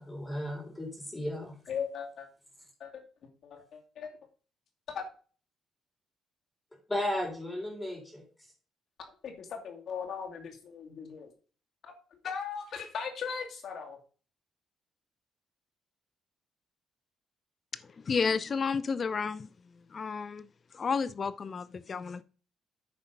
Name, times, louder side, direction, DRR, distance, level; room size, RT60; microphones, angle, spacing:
voice 1, 0.0-1.6 6.9-8.2, left 1 dB, 15° left, 4.3 m, -34 dB
voice 2, 1.7-2.3 2.8-4.1 4.9-5.0 9.2-11.3 11.8-11.9 12.2-14.0, left 6 dB, 65° left, 2.5 m, -38 dB
voice 3, 18.0-19.5 19.9-20.5 20.7-22.2, left 5 dB, 40° left, 0.5 m, -31 dB
9.3 x 5.6 x 5.2 m
cardioid pair, 90°, 0 cm